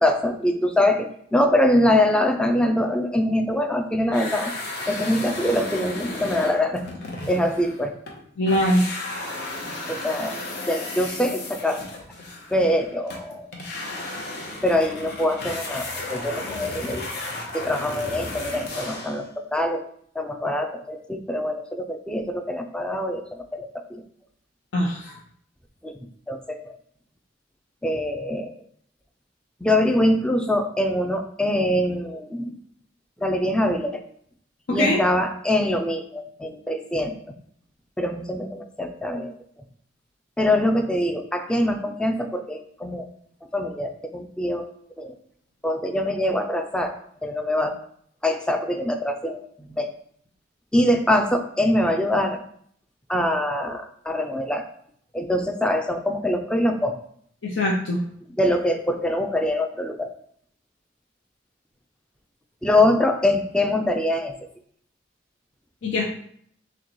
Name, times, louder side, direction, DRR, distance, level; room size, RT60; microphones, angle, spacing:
voice 1, 0.0-4.5 4.9-6.8 7.3-7.9 9.9-10.4 10.7-11.8 12.5-13.5 14.6-17.1 17.5-19.8 20.2-24.0 25.8-26.0 26.3-26.8 27.8-28.5 29.6-32.5 33.2-34.0 34.7-37.1 38.0-39.3 40.4-43.1 43.5-44.7 45.0-45.1 45.6-47.0 47.2-47.8 48.2-49.9 50.7-52.4 53.1-54.7 55.1-57.0 58.4-60.1 62.6-64.3, left 1 dB, 5° left, 5 dB, 0.3 m, -23 dB
sound 1, 4.1-8.2 8.5-19.3, left 2 dB, 55° left, 0.8 m, -34 dB
voice 2, 8.4-8.9 24.7-25.2 34.7-35.0 57.4-58.0 65.8-66.0, left 1 dB, 85° left, -3 dB, 0.7 m, -22 dB
6.3 x 2.2 x 3.0 m, 0.63 s
head